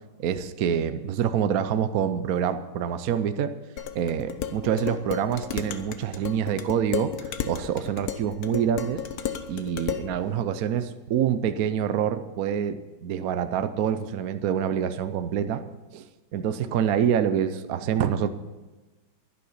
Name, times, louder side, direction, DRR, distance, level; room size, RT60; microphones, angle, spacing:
voice 1, 0.2-3.5 3.9-9.0 9.5-15.6 15.9-16.0 16.3-18.3, right 8 dB, 65° right, 10 dB, 0.9 m, -26 dB
Dishes pots and pans, 3.8-10.1, left 9 dB, 55° left, 1.2 m, -33 dB
11.5 x 11.0 x 8.1 m, 1.2 s
omnidirectional pair, 2.2 m